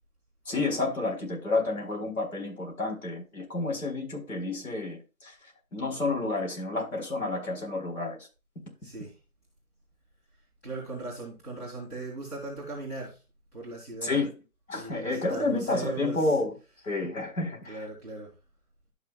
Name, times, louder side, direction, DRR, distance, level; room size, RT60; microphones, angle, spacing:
voice 1, 0.5-5.3 5.7-8.2 14.0-14.3 14.7-16.5 16.8-17.8, left 3 dB, 70° left, 4.3 m, -30 dB
voice 2, 8.8-9.1 10.6-13.2 13.5-14.2 14.7-16.4 17.6-18.3, right 3 dB, 10° left, 2.0 m, -38 dB
12.0 x 6.3 x 2.3 m
hypercardioid pair, 180°, 44 cm